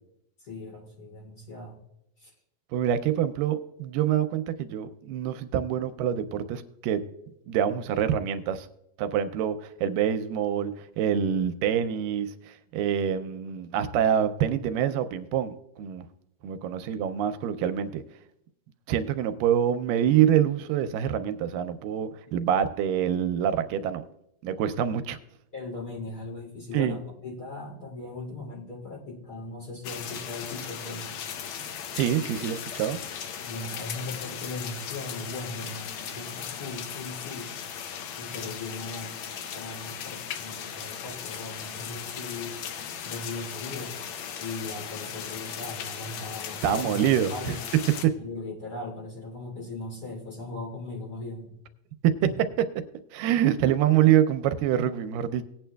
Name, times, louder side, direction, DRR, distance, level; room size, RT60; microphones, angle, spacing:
voice 1, 0.4-1.8 2.2-2.3 25.5-31.1 33.4-37.5 38.2-42.6 43.0-44.0 44.4-47.0 47.3-47.6 48.1-51.6 52.2-52.3, left 2 dB, 30° left, -3 dB, 3.1 m, -38 dB
voice 2, 2.7-7.1 7.5-8.7 9.0-16.1 16.4-18.0 18.9-24.0 24.4-25.2 26.7-27.0 31.9-33.0 46.6-47.6 48.0-48.1 52.0-52.2 53.1-55.4, right 10 dB, 85° right, 10 dB, 2.2 m, -26 dB
sound 1, 29.8-48.1, left 8 dB, 75° left, 1.7 m, -37 dB
18.5 x 8.7 x 2.3 m, 0.80 s
omnidirectional pair, 3.9 m